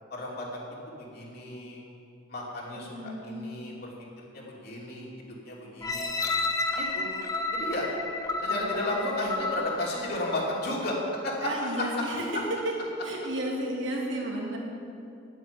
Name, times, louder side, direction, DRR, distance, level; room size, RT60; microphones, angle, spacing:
voice 1, 0.1-1.8 2.3-3.9 4.2-6.2 6.7-7.1 7.5-7.9 8.4-11.5 11.8-11.9, left 1 dB, 55° left, -4 dB, 3.0 m, -33 dB
voice 2, 2.8-3.4 8.5-9.1 11.4-12.7 13.0-14.6, right 1 dB, 75° right, -2 dB, 2.7 m, -33 dB
sound 1, 5.8-10.8 11.3-11.4, left 3 dB, 20° left, 1.0 m, -31 dB
9.1 x 8.9 x 9.8 m, 2.6 s
head